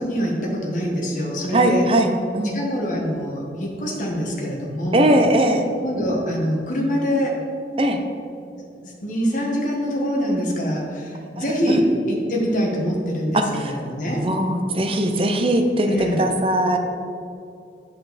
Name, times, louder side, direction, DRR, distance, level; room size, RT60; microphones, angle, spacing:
voice 1, 0.0-1.8 2.5-5.1 5.8-7.4 8.8-14.2 15.9-16.3, equal, 45° left, -2 dB, 1.5 m, -24 dB
voice 2, 1.5-2.6 4.9-5.7 7.8-8.0 11.4-11.8 13.3-13.7 14.2-16.8, right 1 dB, 30° right, 5 dB, 0.6 m, -20 dB
7.9 x 6.5 x 4.2 m, 2.6 s
head